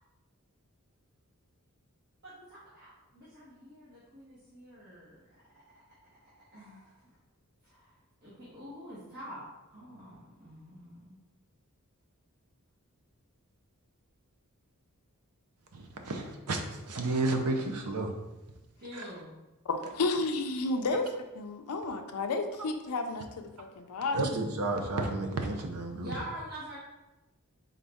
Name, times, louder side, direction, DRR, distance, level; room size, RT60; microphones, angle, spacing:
voice 1, 2.2-5.2 5.7-5.8 6.5-7.0 7.6-7.9 8.2-9.5 9.7-11.2 18.8-19.3 25.9-26.8, equal, 45° right, -10 dB, 1.3 m, -46 dB
voice 2, 15.7-18.1 18.9-19.0 24.1-26.1, right 2 dB, 85° right, 4 dB, 0.6 m, -32 dB
voice 3, 19.7-21.1 21.3-24.4, left 3 dB, 80° left, 5 dB, 0.5 m, -32 dB
4.0 x 3.7 x 3.5 m, 1.0 s
head